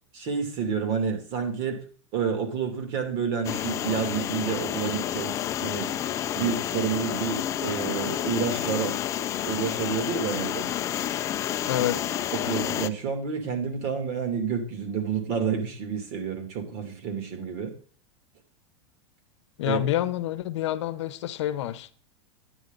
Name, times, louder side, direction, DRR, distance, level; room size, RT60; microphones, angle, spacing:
voice 1, 0.2-1.8 2.1-5.9 6.3-9.0 9.4-10.7 12.4-17.7 19.7-19.8, right 6 dB, 45° right, 2.8 m, -29 dB
sound 1, 3.4-12.9, left 11 dB, 20° left, 0.4 m, -30 dB
voice 2, 11.7-12.1 19.6-21.9, left 12 dB, 70° left, 0.9 m, -28 dB
10.5 x 9.9 x 4.0 m
supercardioid pair, 160°, 15 cm